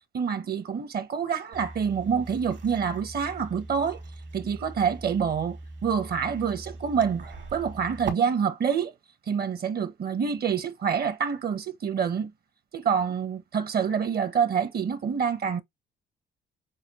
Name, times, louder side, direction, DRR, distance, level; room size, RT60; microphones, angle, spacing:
voice 1, 0.1-4.0 4.3-7.2 7.5-8.9 9.3-12.3 12.7-15.6, right 7 dB, 50° right, 0.9 m, -27 dB
sound 1, 1.5-8.1, right 3 dB, 70° right, 1.8 m, -40 dB
6.4 x 2.3 x 3.0 m
cardioid pair, 90°, 20 cm